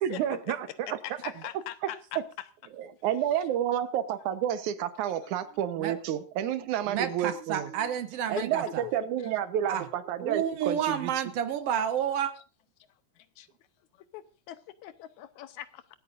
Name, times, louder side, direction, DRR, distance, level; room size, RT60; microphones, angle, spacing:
voice 1, 0.0-0.9 2.8-7.9 8.3-11.1, right 10 dB, 85° right, 2.5 m, -30 dB
voice 2, 1.0-2.5 8.4-8.5 8.8-8.9 9.2-9.3 13.2-13.5 14.1-15.9, left 13 dB, 80° left, 2.2 m, -41 dB
voice 3, 6.9-8.8 9.7-9.8 10.2-12.3, right 9 dB, 70° right, 1.6 m, -30 dB
25.5 x 9.0 x 2.5 m
omnidirectional pair, 3.3 m